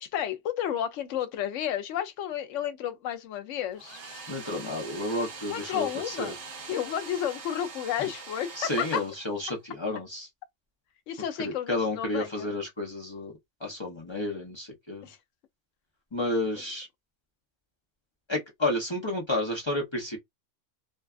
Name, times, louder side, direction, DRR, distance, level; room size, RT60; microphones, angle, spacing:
voice 1, 0.0-4.0 5.5-6.3 6.7-9.0 11.1-12.5 15.0-15.2 16.5-16.6, left 10 dB, 75° left, 0.9 m, -32 dB
Domestic sounds home sounds, 3.7-9.6, right 4 dB, 45° right, 0.9 m, -43 dB
voice 2, 4.3-6.3 8.6-10.3 11.4-13.3 13.6-15.1 16.1-16.9 18.3-20.2, left 1 dB, 30° left, 0.5 m, -31 dB
2.6 x 2.3 x 2.3 m
omnidirectional pair, 1.3 m